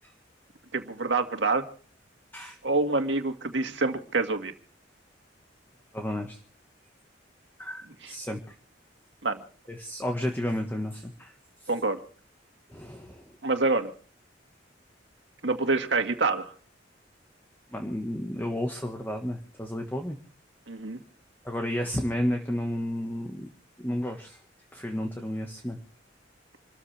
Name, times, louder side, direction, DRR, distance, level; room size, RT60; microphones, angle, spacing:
voice 1, 0.7-1.6 2.6-4.5 8.0-8.1 9.2-9.4 11.7-12.0 13.4-13.9 15.4-16.5 20.7-21.0, right 3 dB, 75° right, 5 dB, 2.0 m, -26 dB
voice 2, 5.9-6.4 7.6-8.5 9.7-11.3 11.6-11.7 12.7-13.4 17.7-20.2 21.4-23.5 23.8-24.4 24.7-25.8, left 1 dB, 10° left, 4 dB, 1.6 m, -32 dB
27.5 x 14.0 x 3.5 m, 0.41 s
head